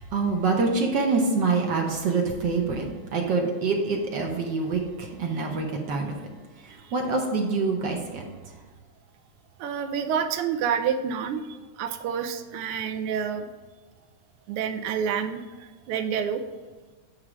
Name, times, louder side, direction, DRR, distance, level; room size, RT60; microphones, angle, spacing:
voice 1, 0.1-2.9 3.1-6.2 6.7-8.2, right 4 dB, 65° right, 1 dB, 1.3 m, -25 dB
voice 2, 9.6-13.5 14.5-16.4, right 7 dB, 85° right, 7 dB, 1.6 m, -28 dB
8.5 x 3.3 x 5.9 m, 1.3 s
omnidirectional pair, 2.4 m